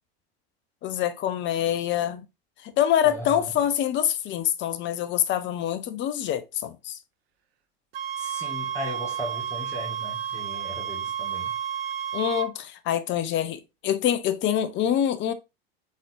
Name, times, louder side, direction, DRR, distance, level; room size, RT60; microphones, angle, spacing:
voice 1, 0.8-2.2 2.6-7.0 12.1-15.3, left 10 dB, 40° left, 0.7 m, -25 dB
voice 2, 3.0-3.5 8.2-11.5, equal, 10° left, 1.7 m, -37 dB
sound 1, 7.9-12.5, right 9 dB, 75° right, 0.7 m, -31 dB
4.2 x 3.8 x 2.6 m
hypercardioid pair, 90°, 31 cm